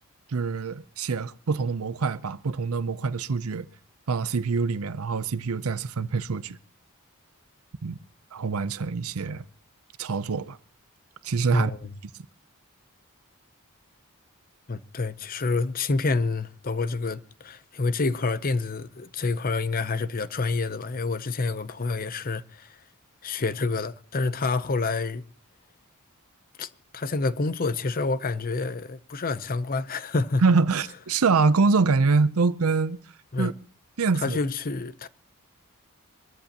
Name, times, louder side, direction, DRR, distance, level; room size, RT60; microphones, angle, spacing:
voice 1, 0.3-3.7 4.1-6.6 7.8-8.0 8.3-9.4 10.0-10.6 11.2-11.7 30.4-33.0 33.4-33.5 34.0-34.4, right 4 dB, 75° right, 0.6 m, -25 dB
voice 2, 14.7-22.7 23.2-25.2 26.6-30.4 33.3-33.5 34.2-35.1, left 3 dB, 40° left, 0.7 m, -28 dB
23.0 x 13.5 x 2.9 m
head